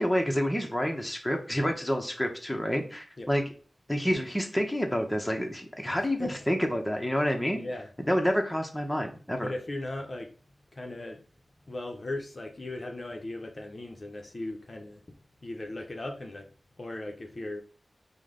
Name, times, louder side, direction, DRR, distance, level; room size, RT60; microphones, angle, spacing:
voice 1, 0.0-3.4 3.9-7.6 8.1-9.5, equal, 5° left, 0.8 m, -28 dB
voice 2, 5.9-6.3 7.6-7.9 9.4-10.3 10.7-11.2 11.7-15.0 15.4-16.5 16.8-17.6, left 2 dB, 40° left, 0.6 m, -37 dB
5.0 x 2.1 x 3.7 m
wide cardioid pair, 95°, 0 cm